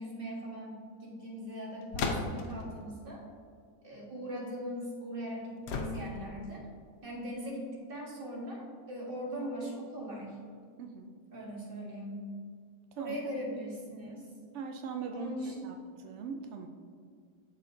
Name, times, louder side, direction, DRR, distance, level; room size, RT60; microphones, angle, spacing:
voice 1, 0.0-3.2 3.8-6.7 7.0-10.4 11.3-12.3 13.0-14.3 15.1-15.6, equal, 35° right, -3 dB, 1.5 m, -40 dB
sound 1, 1.9-2.6 5.7-6.4, left 3 dB, 80° left, 1.3 m, -34 dB
voice 2, 10.8-11.1 13.0-13.2 14.5-15.8 16.0-16.7, right 5 dB, 80° right, 4 dB, 0.6 m, -40 dB
11.5 x 4.3 x 2.6 m, 2.1 s
omnidirectional pair, 1.8 m